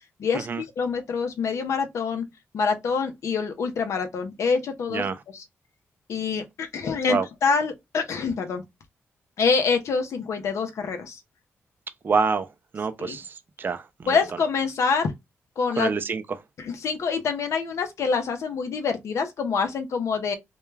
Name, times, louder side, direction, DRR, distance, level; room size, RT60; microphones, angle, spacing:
voice 1, 0.2-2.2 2.5-5.1 5.3-5.4 6.1-8.6 9.4-11.2 13.0-13.2 14.1-15.1 15.6-15.9 16.6-20.3, left 5 dB, 75° left, 0.6 m, -26 dB
voice 2, 12.0-12.5 12.7-14.1 15.8-16.2, right 5 dB, 40° right, 0.3 m, -26 dB
2.2 x 2.2 x 3.1 m
cardioid pair, 75°, 5 cm